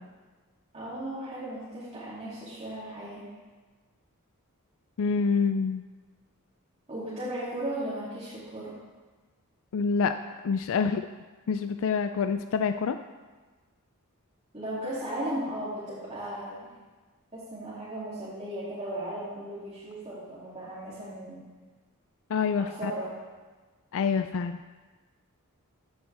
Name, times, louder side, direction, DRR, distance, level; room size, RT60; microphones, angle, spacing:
voice 1, 0.7-3.3 6.9-8.7 14.5-16.7 17.3-21.4 22.6-23.1, right 1 dB, 30° right, -11 dB, 2.7 m, -36 dB
voice 2, 5.0-5.8 9.7-10.2 10.4-11.1 11.5-13.0 22.3-22.9 23.9-24.6, left 5 dB, 65° left, 8 dB, 0.4 m, -26 dB
14.5 x 8.6 x 3.4 m, 1.3 s
head